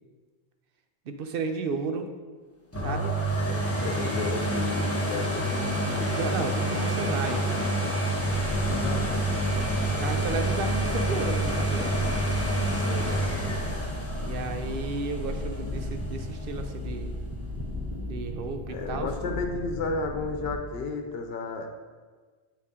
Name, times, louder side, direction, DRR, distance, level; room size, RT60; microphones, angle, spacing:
voice 1, 1.1-2.1 2.8-3.2 3.8-4.4 5.2-5.4 6.0-7.5 10.0-11.9 14.2-17.1 18.0-19.1, right 4 dB, 65° right, 6 dB, 0.8 m, -33 dB
sound 1, 2.7-16.4 16.9-17.0, right 1 dB, 15° left, 0.9 m, -28 dB
voice 2, 3.3-5.5 8.6-9.3 12.6-13.8 18.7-21.7, left 3 dB, 75° left, 4 dB, 0.9 m, -34 dB
sound 2, 8.2-20.6, left 1 dB, 15° right, 0.7 m, -35 dB
7.4 x 4.2 x 3.6 m, 1.4 s
omnidirectional pair, 1.1 m